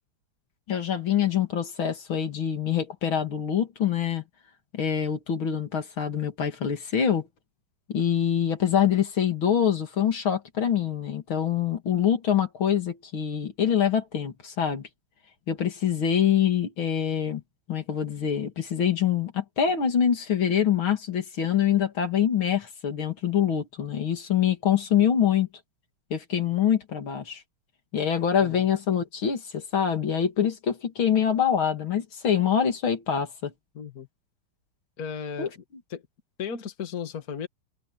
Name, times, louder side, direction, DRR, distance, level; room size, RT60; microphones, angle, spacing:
voice 1, 0.7-4.2 4.7-7.3 7.9-14.8 15.5-17.4 17.7-25.5 26.1-27.4 27.9-33.5 35.4-35.5, left 8 dB, 75° left, 3.2 m, -25 dB
voice 2, 33.8-34.1 35.0-35.6 35.9-36.0 36.4-37.5, left 7 dB, 45° left, 2.1 m, -35 dB
omnidirectional pair, 2.2 m